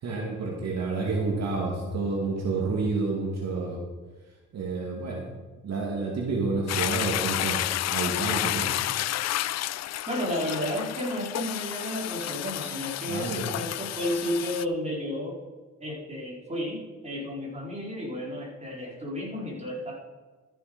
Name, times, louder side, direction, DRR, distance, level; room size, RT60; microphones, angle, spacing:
voice 1, 0.0-3.8 4.5-5.2 5.6-8.7 13.1-13.5, right 3 dB, 60° right, -2 dB, 2.4 m, -29 dB
Toilet flush, 6.7-14.6, left 14 dB, 60° left, 0.4 m, -31 dB
voice 2, 10.1-15.4 15.8-19.9, equal, 20° right, -3 dB, 4.1 m, -32 dB
13.5 x 7.1 x 5.2 m, 1.3 s
cardioid pair, 90°, 30 cm